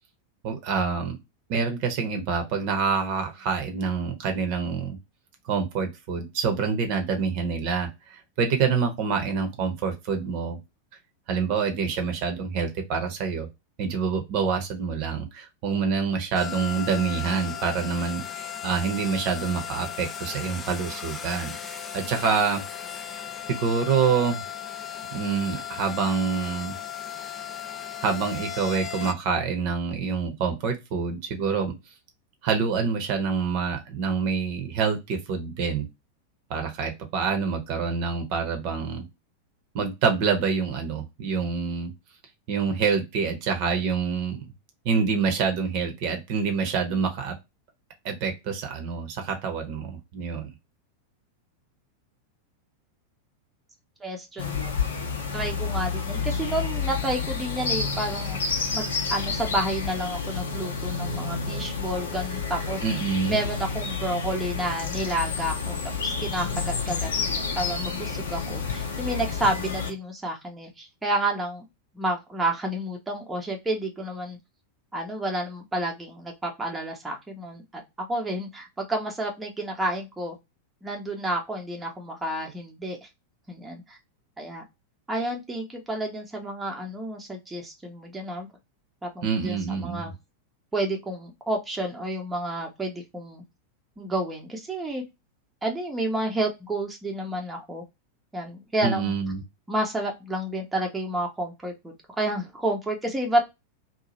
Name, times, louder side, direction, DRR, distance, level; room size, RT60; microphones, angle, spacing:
voice 1, 0.4-1.2 1.5-5.0 5.4-10.6 11.3-13.5 13.8-22.6 23.5-24.4 25.1-26.7 28.0-31.8 32.4-35.9 36.5-39.0 39.7-41.9 42.5-44.5 44.8-47.3 48.0-50.5 62.8-63.4 89.2-90.1 98.8-99.4, right 5 dB, 45° right, 5 dB, 0.8 m, -26 dB
sound 1, 16.3-29.1, left 9 dB, 20° left, 0.4 m, -36 dB
voice 2, 54.0-54.7 55.3-58.4 58.7-62.8 63.3-65.8 66.0-71.7 71.9-74.4 74.9-80.4 80.8-83.1 83.5-84.0 84.4-84.6 85.1-88.5 89.0-90.1 90.7-93.4 94.0-95.0 95.6-97.8 98.3-99.1 99.7-103.4, right 1 dB, 10° right, 1 dB, 0.7 m, -30 dB
sound 2, 54.4-69.9, left 5 dB, 65° left, 0.7 m, -30 dB
2.7 x 2.3 x 2.9 m, 0.21 s
figure-of-eight pair, 90°, 0 cm